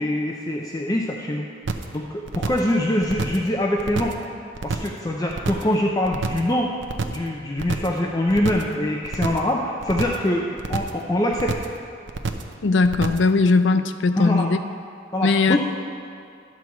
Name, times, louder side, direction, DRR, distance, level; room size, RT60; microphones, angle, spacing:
voice 1, 0.0-1.5 1.9-4.1 4.6-6.7 7.0-11.5 14.1-14.5 15.1-15.6, left 1 dB, 20° left, -1 dB, 0.6 m, -24 dB
sound 1, 1.7-2.0 2.3-2.7 3.0-3.5 3.8-4.2 4.5-5.0 5.3-5.7 6.0-6.5 6.8-7.3 7.6-8.0 8.3-8.7 9.0-9.5 9.8-10.3 10.6-11.0 11.3-11.8 12.1-12.5 12.8-13.3, right 3 dB, 80° right, 0.6 m, -28 dB
voice 2, 12.6-14.6 15.2-15.6, left 3 dB, 75° left, 10 dB, 0.5 m, -19 dB
10.5 x 4.6 x 7.1 m, 2.4 s
head